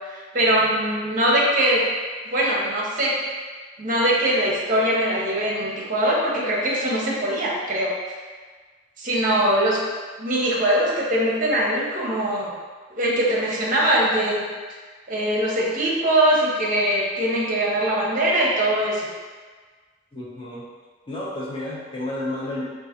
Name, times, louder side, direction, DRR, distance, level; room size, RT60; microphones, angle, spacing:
voice 1, 0.1-1.8 2.3-3.1 3.8-7.9 9.0-9.8 10.2-12.5 13.0-14.4 15.1-19.1, right 1 dB, 40° right, -4 dB, 0.7 m, -22 dB
voice 2, 20.1-20.6 21.1-22.6, left 1 dB, 25° left, -6 dB, 0.7 m, -31 dB
3.8 x 2.4 x 2.8 m, 1.5 s
head